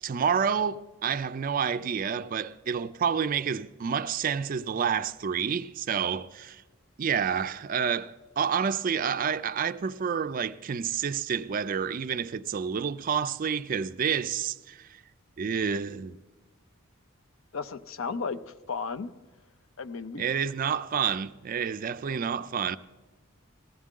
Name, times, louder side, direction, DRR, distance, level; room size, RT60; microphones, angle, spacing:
voice 1, 0.0-6.6 7.0-14.9 15.4-16.2 20.2-22.8, right 7 dB, 40° right, 0.4 m, -29 dB
voice 2, 17.5-18.4 18.7-19.1 19.8-20.2, left 5 dB, 70° left, 0.6 m, -33 dB
19.0 x 14.5 x 3.7 m
head